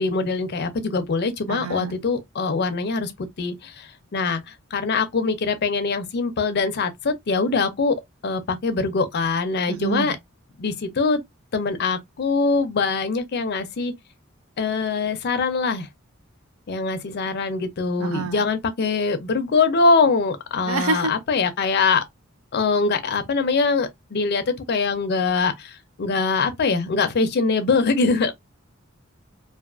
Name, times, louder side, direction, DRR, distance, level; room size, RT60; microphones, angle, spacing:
voice 1, 0.0-3.1 3.4-8.0 8.2-10.2 10.6-11.2 11.5-13.9 14.6-15.9 16.7-22.0 22.5-28.3, left 4 dB, 50° left, 0.5 m, -23 dB
voice 2, 1.5-2.0 9.7-10.1 18.0-18.5 20.7-21.1, right 4 dB, 85° right, 0.5 m, -27 dB
2.4 x 2.4 x 2.3 m
head